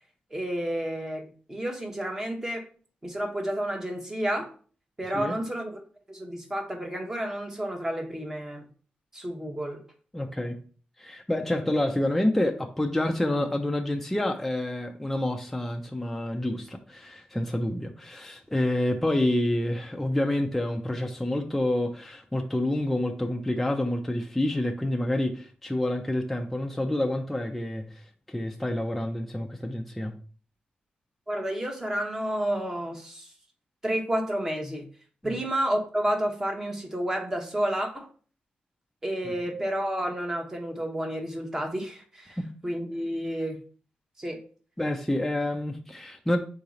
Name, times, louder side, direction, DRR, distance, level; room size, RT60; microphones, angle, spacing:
voice 1, 0.3-2.6 3.0-4.5 5.0-5.7 6.1-8.7 9.1-9.8 31.3-33.3 33.8-34.9 35.2-38.1 39.0-42.4 42.6-43.6 44.2-44.4, right 1 dB, 15° right, 0.9 m, -30 dB
voice 2, 10.1-10.6 11.0-30.2 35.2-35.4 39.2-39.3 42.4-42.5 44.8-46.4, left 1 dB, 5° left, 0.4 m, -28 dB
3.9 x 2.8 x 4.8 m
wide cardioid pair, 150°, 3 cm